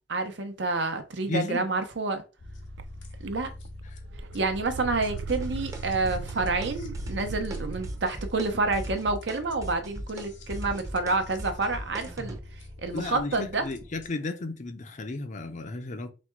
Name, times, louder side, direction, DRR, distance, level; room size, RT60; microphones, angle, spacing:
voice 1, 0.1-2.2 3.2-3.5 4.3-12.4 12.8-13.6, right 3 dB, 70° right, 0.8 m, -28 dB
voice 2, 1.3-1.7 12.9-16.1, left 3 dB, 40° left, 0.6 m, -34 dB
sound 1, 2.4-14.1, left 1 dB, 85° left, 1.0 m, -44 dB
sound 2, 2.8-2.9 3.3-3.8 4.1-8.1, right 5 dB, 90° right, 0.3 m, -38 dB
sound 3, 5.3-5.8 6.1-6.7 6.9-7.6 7.8-8.5 8.7-12.4, right 1 dB, 20° right, 0.7 m, -37 dB
4.2 x 2.3 x 4.5 m
head